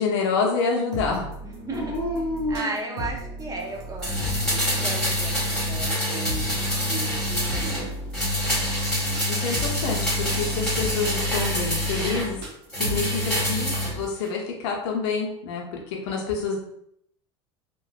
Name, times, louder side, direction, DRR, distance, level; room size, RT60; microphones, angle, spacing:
voice 1, 0.0-1.3 9.3-12.4 12.8-16.6, left 4 dB, 70° left, 0 dB, 0.8 m, -27 dB
sound 1, 0.9-14.1, equal, 80° right, 0.8 m, -36 dB
voice 2, 1.4-5.3 5.7-7.9, right 3 dB, 25° right, 0 dB, 0.7 m, -36 dB
Dog, 1.7-3.6 4.2-5.0 7.3-8.2, left 1 dB, 35° left, 0.6 m, -33 dB
sound 2, 4.0-7.8 8.1-12.3 12.7-13.9 14.2-14.3, left 1 dB, 5° left, 1.4 m, -26 dB
2.9 x 2.4 x 2.4 m, 0.73 s
hypercardioid pair, 90°, 15 cm